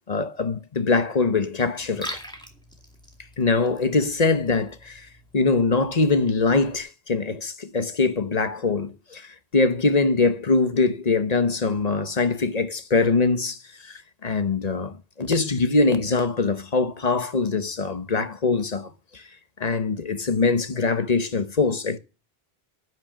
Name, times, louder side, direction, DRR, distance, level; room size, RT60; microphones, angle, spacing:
voice 1, 0.1-2.2 3.4-5.1 5.3-19.2 19.6-22.0, left 3 dB, 40° left, 1.1 m, -23 dB
Liquid, 1.8-6.8, equal, 5° left, 2.3 m, -43 dB
10.5 x 6.4 x 7.4 m
omnidirectional pair, 1.1 m